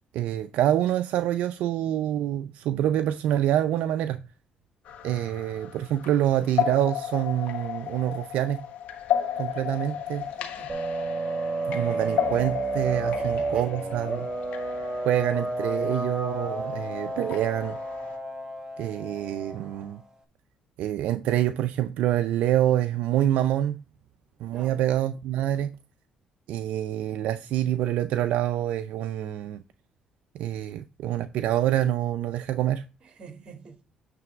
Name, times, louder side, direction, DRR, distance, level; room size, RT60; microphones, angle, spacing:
voice 1, 0.1-4.2 5.0-8.6 9.4-10.3 11.7-14.3 15.0-17.8 18.8-20.0 20.8-23.8 24.4-25.8 26.5-29.6 30.3-32.8, right 12 dB, 80° right, 0.4 m, -26 dB
sound 1, 4.9-18.1, left 10 dB, 75° left, 1.3 m, -34 dB
voice 2, 10.2-10.8 13.1-13.7 24.5-24.9 33.2-33.8, right 5 dB, 45° right, 2.3 m, -47 dB
sound 2, 10.7-19.9, right 2 dB, 25° right, 1.4 m, -31 dB
9.4 x 3.3 x 5.0 m
cardioid pair, 90°, 2 cm